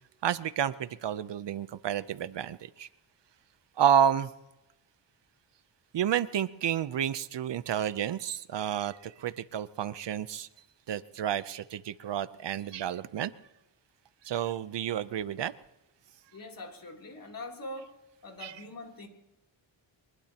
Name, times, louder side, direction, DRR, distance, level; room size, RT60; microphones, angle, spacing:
voice 1, 0.2-2.9 3.8-4.3 5.9-10.5 10.9-13.3 14.2-15.5 18.4-18.5, right 9 dB, 60° right, 15 dB, 0.7 m, -30 dB
voice 2, 16.3-18.0 18.2-19.1, left 1 dB, 45° left, 1 dB, 3.2 m, -43 dB
24.0 x 21.0 x 2.9 m, 0.97 s
wide cardioid pair, 115°, 48 cm